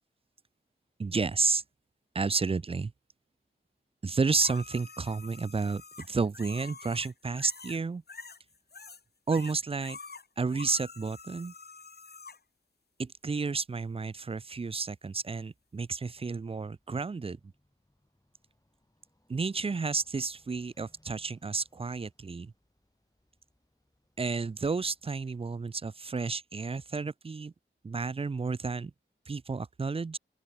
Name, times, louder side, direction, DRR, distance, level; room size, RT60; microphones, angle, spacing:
voice 1, 1.0-1.6 2.1-2.9 4.0-8.0 9.3-10.0 10.4-11.5 13.0-17.4 19.3-22.5 24.2-27.5 27.8-28.9 29.3-30.2, right 4 dB, 30° right, 0.4 m, -31 dB
sound 1, 4.4-7.8 8.1-9.0 9.3-12.4 15.9-16.0, left 4 dB, 50° left, 1.0 m, -47 dB
sound 2, 13.2-26.3, left 1 dB, 15° left, 6.1 m, -72 dB
open air
wide cardioid pair, 65°, 21 cm